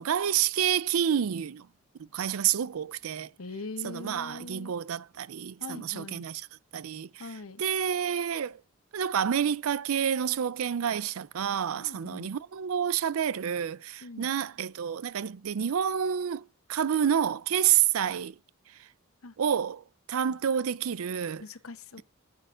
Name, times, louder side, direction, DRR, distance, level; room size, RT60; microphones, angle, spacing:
voice 1, 0.0-1.7 2.0-3.3 3.8-6.4 6.7-7.2 7.6-8.6 8.9-18.4 18.7-18.9 19.4-21.4, right 8 dB, 80° right, 0.4 m, -29 dB
voice 2, 3.4-4.7 5.6-6.3 7.2-7.6 11.8-12.3 14.0-14.3 19.2-19.4 20.3-20.4 21.4-22.0, left 3 dB, 80° left, 0.9 m, -42 dB
14.5 x 7.9 x 2.5 m
head